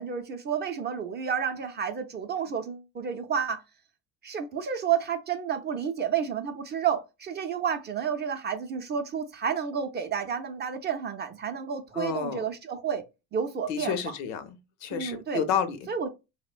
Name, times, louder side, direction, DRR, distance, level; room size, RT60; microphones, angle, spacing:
voice 1, 0.0-3.6 4.2-13.0 13.3-14.1 14.9-15.4 15.9-16.1, right 7 dB, 30° right, 0.4 m, -30 dB
voice 2, 11.9-12.4 13.7-15.9, left 7 dB, 80° left, 0.6 m, -30 dB
2.8 x 2.1 x 2.4 m
supercardioid pair, 100°, 38 cm